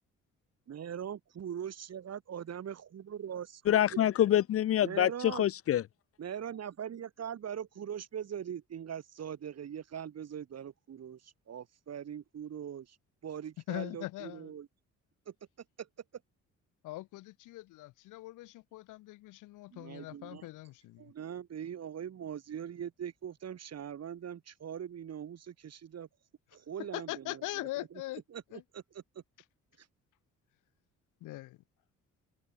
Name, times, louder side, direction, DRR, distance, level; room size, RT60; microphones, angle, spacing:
voice 1, 0.7-4.1 4.8-5.5 6.2-13.0 13.2-14.7 15.3-15.4 15.8-15.9 19.7-20.5 21.0-26.1 26.5-27.7 28.3-28.4 28.7-28.8 29.1-29.2 29.8-29.9, right 9 dB, 55° right, 4.5 m, -41 dB
voice 2, 3.7-5.8, left 11 dB, 50° left, 0.5 m, -26 dB
voice 3, 13.7-14.5 16.8-21.1 26.8-28.2 28.5-28.6 31.2-31.6, left 18 dB, 90° left, 0.9 m, -41 dB
cardioid pair, 90°, 30 cm